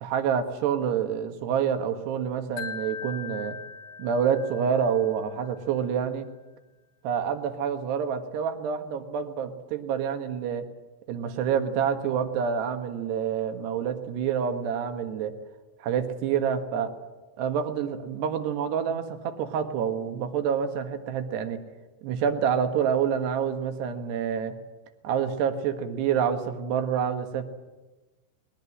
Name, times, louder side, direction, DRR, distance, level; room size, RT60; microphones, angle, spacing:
voice 1, 0.0-3.6 4.0-6.3 7.0-10.7 11.1-15.3 15.8-16.9 17.4-21.6 22.0-24.6 25.0-27.4, right 7 dB, 75° right, 7 dB, 3.7 m, -27 dB
Wind chime, 2.6-5.7, left 6 dB, 65° left, 1.3 m, -40 dB
21.0 x 20.0 x 9.9 m, 1.2 s
omnidirectional pair, 4.9 m